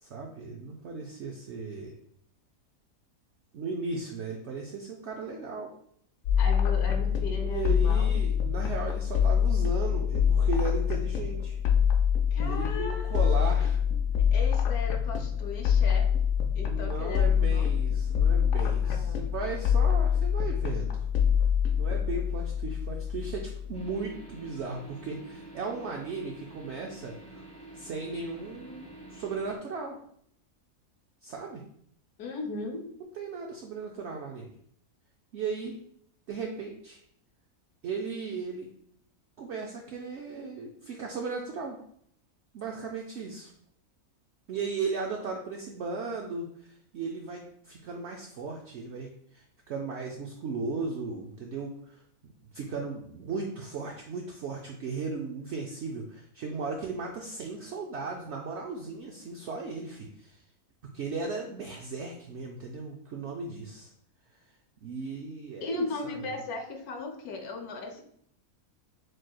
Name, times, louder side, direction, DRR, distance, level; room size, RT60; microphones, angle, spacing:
voice 1, 0.0-2.0 3.5-5.7 7.3-11.6 12.4-13.8 16.6-21.0 21.8-27.4 27.7-30.0 31.2-31.6 33.1-34.5 35.3-35.7 36.3-37.0 37.8-38.7 39.4-41.8 42.5-43.5 44.5-52.0 52.5-60.4 60.9-63.9 64.8-66.2, right 4 dB, 65° right, 1 dB, 0.7 m, -36 dB
sound 1, 6.2-23.9, left 8 dB, 70° left, 0.9 m, -25 dB
voice 2, 6.4-8.1 12.3-13.5 14.3-16.1 16.6-17.7 18.8-19.2 32.2-32.8 65.6-68.0, left 2 dB, 90° left, 3 dB, 1.2 m, -37 dB
sound 2, 23.7-29.6, right 2 dB, 5° left, 0.8 m, -48 dB
6.4 x 3.0 x 2.2 m, 0.67 s
omnidirectional pair, 1.5 m